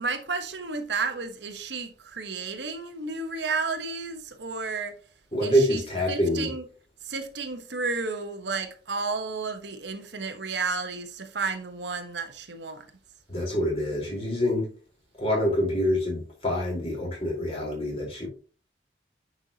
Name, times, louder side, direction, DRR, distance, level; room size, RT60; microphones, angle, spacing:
voice 1, 0.0-5.0 5.4-5.8 6.1-6.6 7.0-12.8, right 4 dB, 75° right, 1.1 m, -32 dB
voice 2, 5.3-6.5 13.3-14.7 15.2-18.3, equal, 30° left, 4.0 m, -26 dB
9.2 x 5.6 x 2.8 m
head